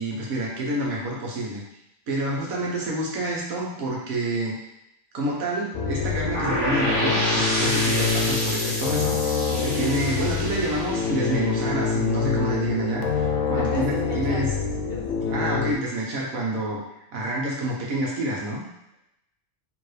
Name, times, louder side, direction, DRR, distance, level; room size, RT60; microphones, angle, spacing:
voice 1, 0.0-1.6 2.1-4.6 5.1-14.5 15.3-16.8 17.1-18.6, right 1 dB, 85° right, -3 dB, 1.5 m, -28 dB
sound 1, 5.7-15.7, left 5 dB, 75° left, 1.0 m, -26 dB
sound 2, 6.3-12.2, equal, 20° left, 1.5 m, -29 dB
voice 2, 13.3-14.4 14.9-15.7, left 3 dB, 50° left, -2 dB, 0.9 m, -36 dB
4.7 x 3.2 x 3.2 m, 0.85 s
omnidirectional pair, 1.4 m